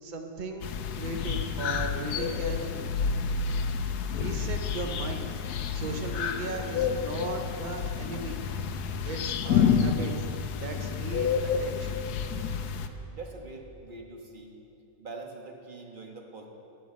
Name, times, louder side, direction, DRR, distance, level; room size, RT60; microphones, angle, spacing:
voice 1, 0.0-2.8 4.0-5.3 5.7-8.4 9.0-10.1 10.6-12.0, right 3 dB, 70° right, 4 dB, 0.4 m, -37 dB
sound 1, 0.6-12.9, left 6 dB, 70° left, 1.1 m, -29 dB
voice 2, 13.1-14.5 15.0-16.5, right 3 dB, 30° right, 1 dB, 1.2 m, -43 dB
13.5 x 10.0 x 5.2 m, 2.8 s
omnidirectional pair, 1.9 m